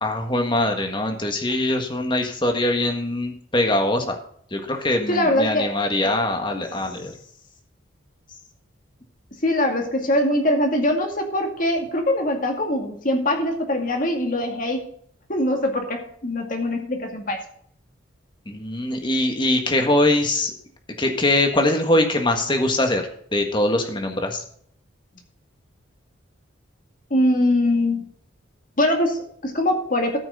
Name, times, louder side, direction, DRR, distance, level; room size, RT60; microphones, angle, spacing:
voice 1, 0.0-4.2 4.5-7.1 18.5-20.5 21.0-23.0 23.3-24.4, left 1 dB, 25° left, 4 dB, 1.6 m, -22 dB
voice 2, 5.1-5.7 6.0-6.1 6.5-6.6 9.4-14.9 15.3-17.4 27.1-28.0 28.8-30.2, left 1 dB, 40° left, 2 dB, 2.2 m, -22 dB
13.5 x 6.1 x 5.0 m, 0.64 s
head